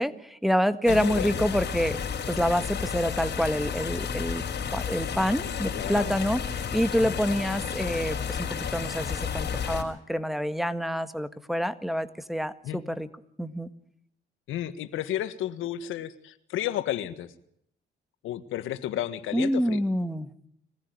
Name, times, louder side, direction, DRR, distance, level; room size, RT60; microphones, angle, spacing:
voice 1, 0.0-2.0 2.3-4.5 4.7-13.1 13.4-13.7 19.3-20.3, equal, ahead, 10 dB, 1.6 m, -27 dB
voice 2, 0.9-1.4 5.4-6.1 7.0-7.2 12.6-12.8 14.5-17.3 18.2-19.8, left 12 dB, 85° left, 13 dB, 1.6 m, -32 dB
sound 1, 0.9-9.8, left 7 dB, 60° left, 4.7 m, -32 dB
22.0 x 15.0 x 9.4 m, 0.69 s
cardioid pair, 90°, 20 cm